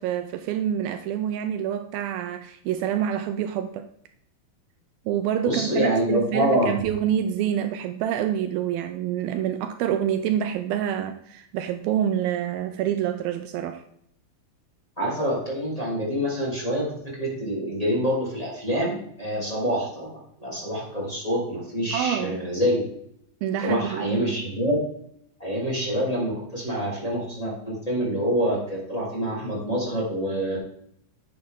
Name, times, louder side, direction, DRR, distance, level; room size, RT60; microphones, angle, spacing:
voice 1, 0.0-3.8 5.1-13.8 21.9-22.4 23.4-24.4, right 10 dB, 80° right, 8 dB, 2.3 m, -27 dB
voice 2, 5.4-6.7 15.0-22.8 23.6-24.8 25.4-30.6, equal, 10° left, -5 dB, 2.8 m, -26 dB
10.5 x 8.7 x 3.7 m, 0.70 s
omnidirectional pair, 4.4 m